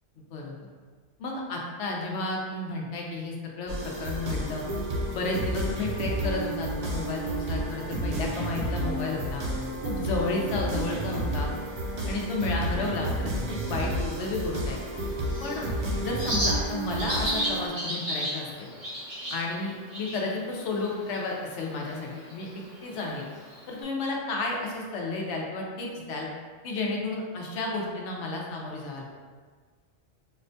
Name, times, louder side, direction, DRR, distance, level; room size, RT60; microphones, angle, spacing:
voice 1, 0.2-0.7 1.2-4.6 5.1-9.4 9.8-11.5 12.1-14.8 15.4-15.7 16.0-18.7 19.3-22.5 22.8-23.2 23.7-26.3 26.6-29.0, left 3 dB, 80° left, -1 dB, 0.9 m, -32 dB
sound 1, 3.7-17.7, right 1 dB, 50° right, 0.5 m, -31 dB
Bird, 14.9-23.8, equal, 80° right, 1.4 m, -35 dB
4.2 x 2.1 x 2.6 m, 1.5 s
omnidirectional pair, 1.2 m